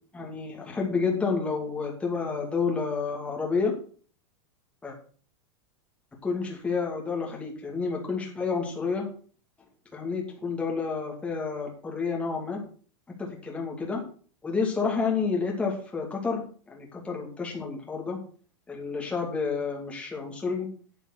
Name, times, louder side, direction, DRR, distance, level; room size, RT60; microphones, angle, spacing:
voice 1, 0.1-3.7 4.8-4.9 6.2-9.1 9.9-12.6 13.2-14.0 14.4-16.4 16.7-18.2 18.7-20.7, left 4 dB, 5° left, -1 dB, 2.3 m, -29 dB
9.4 x 7.3 x 5.9 m, 0.43 s
supercardioid pair, 170°, 17 cm